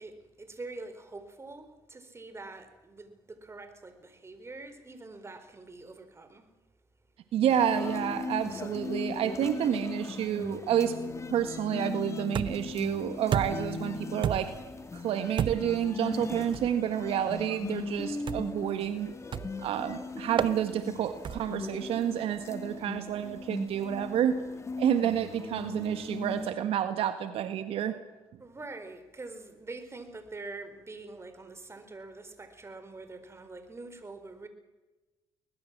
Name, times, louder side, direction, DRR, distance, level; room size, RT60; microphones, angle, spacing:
voice 1, 0.0-6.5 28.4-34.5, right 3 dB, 25° right, 9 dB, 4.5 m, -45 dB
voice 2, 7.3-10.9 11.3-14.5 14.9-19.1 19.6-24.4 24.8-28.0, right 10 dB, 70° right, 9 dB, 1.6 m, -29 dB
sound 1, 7.5-26.5, left 3 dB, 30° left, 2.4 m, -38 dB
sound 2, 12.3-12.8 13.3-13.8 14.2-14.7 15.4-15.8 16.5-16.7 18.3-18.6 19.3-19.7 20.4-20.6 21.2-21.6, right 8 dB, 55° right, 1.1 m, -32 dB
22.0 x 20.5 x 7.5 m, 1.1 s
supercardioid pair, 75°, 10 cm